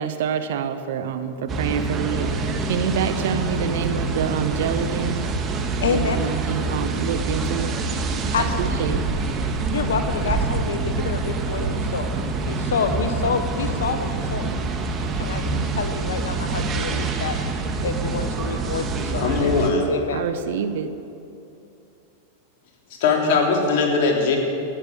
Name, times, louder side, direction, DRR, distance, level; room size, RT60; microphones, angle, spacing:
voice 1, 0.0-2.3 2.7-5.2 6.0-7.7 8.6-9.0 20.1-20.9, right 8 dB, 70° right, 10 dB, 1.1 m, -26 dB
sound 1, 1.5-19.7, right 3 dB, 30° right, 1.6 m, -26 dB
voice 2, 5.8-6.2 8.3-8.7 9.7-12.1 12.4-14.5 15.2-17.4 17.8-20.3, left 5 dB, 85° left, 8 dB, 1.0 m, -28 dB
voice 3, 19.2-19.9 23.0-24.4, left 4 dB, 65° left, 1 dB, 3.3 m, -20 dB
14.5 x 10.0 x 8.5 m, 2.7 s
hypercardioid pair, 110°, 0 cm